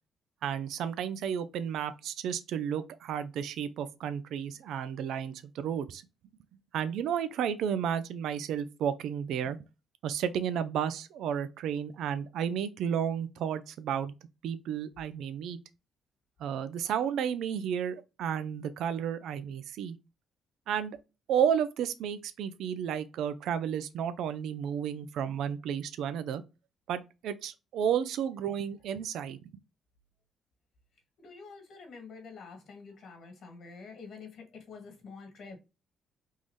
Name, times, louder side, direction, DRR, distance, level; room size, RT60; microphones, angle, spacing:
voice 1, 0.4-6.0 6.7-9.6 10.0-14.1 14.4-15.6 16.4-20.0 20.7-21.0 21.3-26.4 26.9-29.4, right 8 dB, 80° right, 0.4 m, -32 dB
voice 2, 31.2-35.6, left 4 dB, 70° left, 1.6 m, -47 dB
3.7 x 2.6 x 3.0 m
cardioid pair, 90°, 0 cm